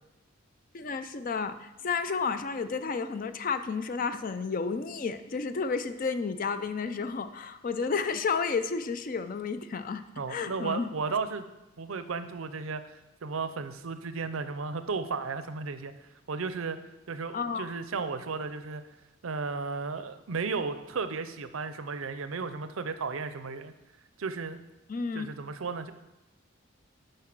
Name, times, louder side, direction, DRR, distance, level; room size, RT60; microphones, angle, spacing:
voice 1, 0.7-10.0 10.3-10.9 17.3-17.7 24.9-25.3, left 5 dB, 40° left, 11 dB, 0.4 m, -31 dB
voice 2, 10.2-11.4 11.8-15.9 16.3-16.8 17.1-18.8 19.2-23.7 24.2-24.6 25.1-25.9, right 4 dB, 80° right, 11 dB, 0.6 m, -34 dB
7.5 x 5.4 x 6.0 m, 0.97 s
head